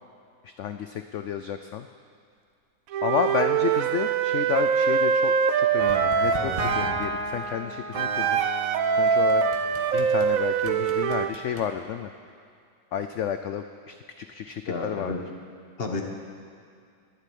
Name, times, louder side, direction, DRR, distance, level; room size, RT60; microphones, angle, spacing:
voice 1, 0.4-1.9 3.0-8.7 9.0-9.4 9.9-12.1 12.9-15.1, left 8 dB, 85° left, 8 dB, 0.6 m, -31 dB
Wind instrument woodwind instrument, 2.9-7.0 7.9-11.3, right 6 dB, 65° right, 0.9 m, -23 dB
sound 1, 5.8-10.3 10.7-11.7, right 2 dB, 25° right, 1.0 m, -34 dB
voice 2, 14.7-15.2 15.8-16.0, left 3 dB, 40° left, 3 dB, 1.3 m, -30 dB
12.5 x 7.5 x 9.3 m, 2.3 s
omnidirectional pair, 1.8 m